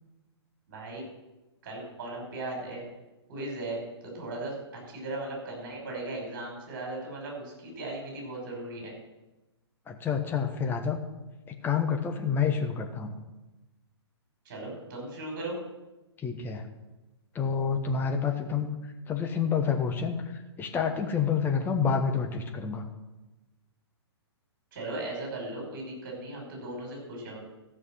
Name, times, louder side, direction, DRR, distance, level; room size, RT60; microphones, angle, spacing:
voice 1, 0.7-1.0 1.6-2.8 3.3-3.8 4.0-8.9 14.5-15.6 24.7-27.4, right 2 dB, 40° right, -1 dB, 5.3 m, -37 dB
voice 2, 9.9-11.0 11.5-13.2 16.2-16.6 17.3-18.7 19.1-22.8, left 6 dB, 15° left, 4 dB, 1.1 m, -28 dB
14.0 x 6.1 x 7.5 m, 1.1 s
figure-of-eight pair, 115°, 14 cm